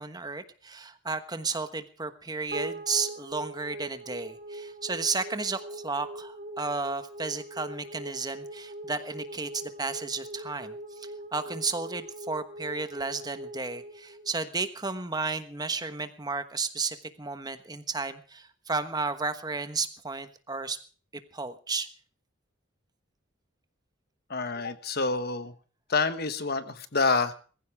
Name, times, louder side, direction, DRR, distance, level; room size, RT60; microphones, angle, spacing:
voice 1, 0.0-20.8 21.3-21.9, right 4 dB, 20° right, 10 dB, 1.2 m, -33 dB
sound 1, 2.5-15.0, right 1 dB, 45° right, 3.6 m, -41 dB
voice 2, 24.3-25.5 25.9-27.3, left 4 dB, 55° left, 11 dB, 1.3 m, -27 dB
21.0 x 15.0 x 3.5 m, 0.39 s
head